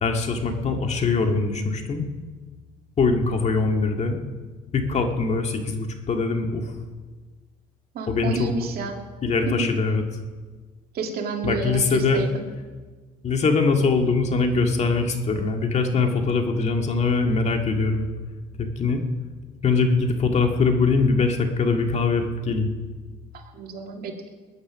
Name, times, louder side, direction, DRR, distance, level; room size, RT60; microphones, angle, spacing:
voice 1, 0.0-2.1 3.0-4.2 4.7-6.6 8.1-8.5 9.2-10.0 11.4-12.2 13.2-18.1 18.6-19.0 19.6-22.7, left 4 dB, 40° left, 4 dB, 1.9 m, -22 dB
voice 2, 7.9-9.0 9.5-9.7 10.9-12.3 23.3-24.3, right 4 dB, 65° right, 2 dB, 2.3 m, -30 dB
21.0 x 9.6 x 6.2 m, 1.4 s
cardioid pair, 110°, 17 cm